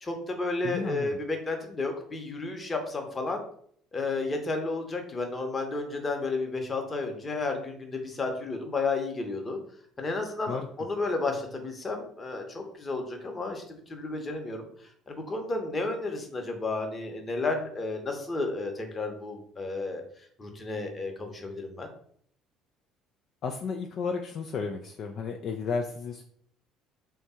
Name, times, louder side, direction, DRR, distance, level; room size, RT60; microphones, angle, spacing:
voice 1, 0.0-3.4 3.9-9.6 10.0-14.7 15.1-20.0 20.4-21.9, left 3 dB, 25° left, 3 dB, 0.9 m, -32 dB
voice 2, 0.6-1.2 10.5-10.7 23.4-26.2, left 5 dB, 50° left, 3 dB, 0.3 m, -33 dB
3.3 x 2.2 x 4.2 m, 0.62 s
figure-of-eight pair, 55°, 0 cm